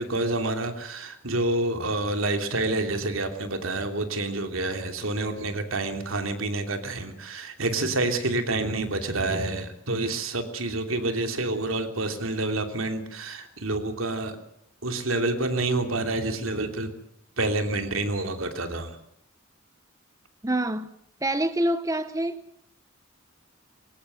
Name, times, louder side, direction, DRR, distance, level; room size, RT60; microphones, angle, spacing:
voice 1, 0.0-14.4 14.8-16.9 17.4-19.0, right 2 dB, 80° right, 2.9 m, -28 dB
voice 2, 20.4-20.9 21.2-22.4, right 1 dB, 15° right, 0.8 m, -26 dB
21.5 x 18.0 x 7.8 m
head